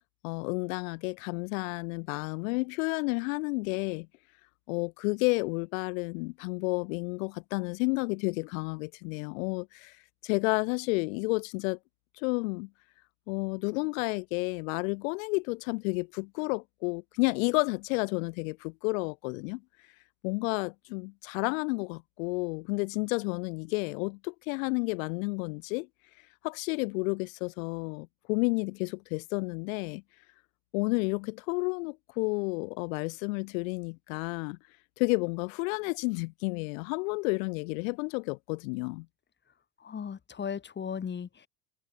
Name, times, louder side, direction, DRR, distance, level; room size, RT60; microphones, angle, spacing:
voice 1, 0.2-4.1 4.7-9.9 10.2-11.8 12.2-12.7 13.3-19.6 20.2-25.9 26.4-30.0 30.7-34.6 35.0-39.1, left 29 dB, 70° left, 4.0 m, -31 dB
voice 2, 39.8-41.5, left 7 dB, 25° left, 4.9 m, -36 dB
supercardioid pair, 115°, 41 cm